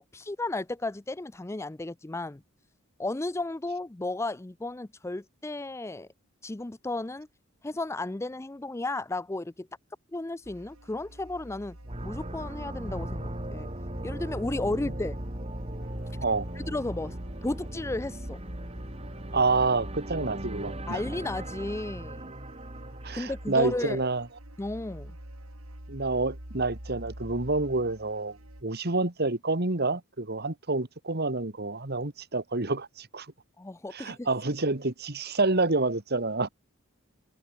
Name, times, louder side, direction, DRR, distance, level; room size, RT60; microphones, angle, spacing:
voice 1, 0.0-2.4 3.0-6.1 6.4-7.3 7.6-9.7 10.1-11.8 12.0-13.7 14.0-15.2 16.7-17.2 17.4-18.4 20.9-22.3 23.1-24.0 24.6-25.1 33.6-34.3, left 2 dB, 15° left, 0.4 m, -33 dB
sound 1, 10.4-28.6, right 1 dB, 85° right, 4.9 m, -45 dB
sound 2, 11.8-23.8, right 1 dB, 30° right, 3.6 m, -39 dB
voice 2, 19.3-21.0 23.0-24.3 25.9-33.3 33.9-36.5, right 3 dB, 50° right, 2.0 m, -28 dB
head